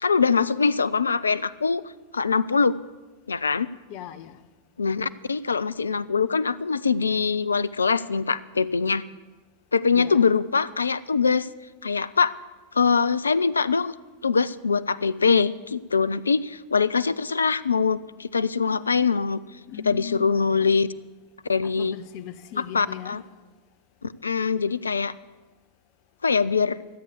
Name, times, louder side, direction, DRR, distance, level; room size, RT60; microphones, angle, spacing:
voice 1, 0.0-1.8 2.1-2.8 3.3-3.7 4.8-9.0 9.7-11.5 11.8-12.3 12.7-13.9 14.2-19.4 19.8-20.9 21.5-22.0 22.6-23.2 24.0-25.1 26.2-26.8, left 5 dB, 75° left, 0.4 m, -23 dB
voice 2, 3.9-4.4 9.9-10.3 18.7-18.9 19.7-20.7 21.6-23.2, left 10 dB, 45° left, 0.7 m, -39 dB
13.5 x 8.2 x 8.1 m
figure-of-eight pair, 90°, 0 cm